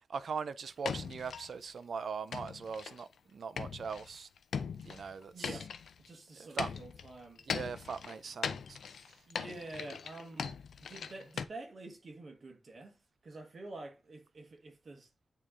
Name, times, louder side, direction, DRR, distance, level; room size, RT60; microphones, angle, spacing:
voice 1, 0.1-4.3 4.8-5.6 6.4-6.8 7.4-8.8 9.4-9.5, right 5 dB, 60° right, 0.4 m, -40 dB
sound 1, 0.8-1.5 2.3-3.1 3.6-6.1 6.6-11.4, left 6 dB, 80° left, 0.5 m, -40 dB
voice 2, 5.3-5.7 6.0-7.5 9.3-15.1, right 2 dB, 45° right, 1.4 m, -48 dB
8.7 x 3.0 x 3.7 m
wide cardioid pair, 150°, 0 cm